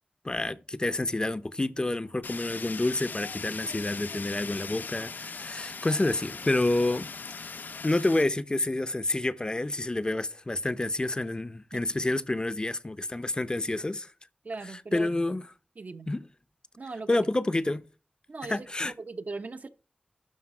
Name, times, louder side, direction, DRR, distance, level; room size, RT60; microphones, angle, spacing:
voice 1, 0.2-7.1 7.3-7.4 7.8-14.1 14.7-15.4 16.1-16.2 17.1-17.8 18.5-18.9, left 2 dB, 25° left, 0.6 m, -28 dB
Fire, 2.2-8.2, left 5 dB, 70° left, 0.4 m, -39 dB
voice 2, 14.4-15.1 15.8-16.1 16.8-17.2 18.3-18.7 19.0-19.7, right 3 dB, 55° right, 0.7 m, -38 dB
12.0 x 5.0 x 4.9 m
wide cardioid pair, 95°, 3 cm